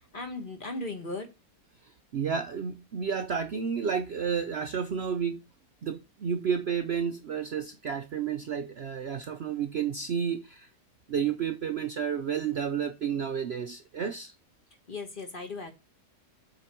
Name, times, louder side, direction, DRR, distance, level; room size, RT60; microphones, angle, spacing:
voice 1, 0.1-1.3 14.9-15.7, left 2 dB, 35° left, 1.5 m, -37 dB
voice 2, 2.1-5.4 5.8-10.7 11.1-14.3, right 7 dB, 55° right, 0.7 m, -31 dB
7.8 x 4.3 x 4.3 m
omnidirectional pair, 1.7 m